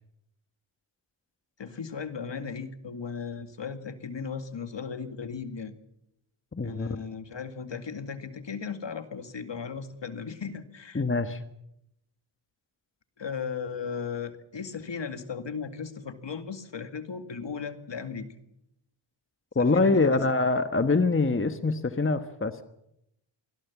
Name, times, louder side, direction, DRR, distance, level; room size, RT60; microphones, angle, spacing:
voice 1, 1.6-5.8 6.6-11.0 13.2-18.3 19.6-20.2, left 6 dB, 55° left, 8 dB, 2.2 m, -36 dB
voice 2, 6.5-6.9 10.9-11.4 19.5-22.6, left 3 dB, 25° left, 9 dB, 1.4 m, -24 dB
24.5 x 16.5 x 7.3 m, 0.82 s
cardioid pair, 60°, 50 cm